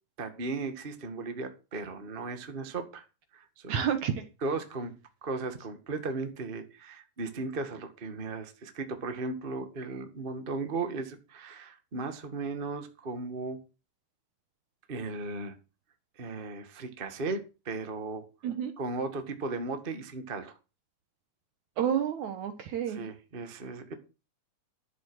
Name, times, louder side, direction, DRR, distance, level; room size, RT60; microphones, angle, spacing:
voice 1, 0.2-3.0 3.3-3.9 4.4-4.9 5.2-13.6 14.9-15.5 16.2-18.3 18.8-20.5 22.9-23.9, right 3 dB, 35° right, 7 dB, 0.8 m, -36 dB
voice 2, 3.7-4.2 18.4-18.7 21.8-23.0, right 8 dB, 65° right, 9 dB, 2.1 m, -29 dB
12.5 x 7.7 x 6.3 m, 0.31 s
omnidirectional pair, 4.4 m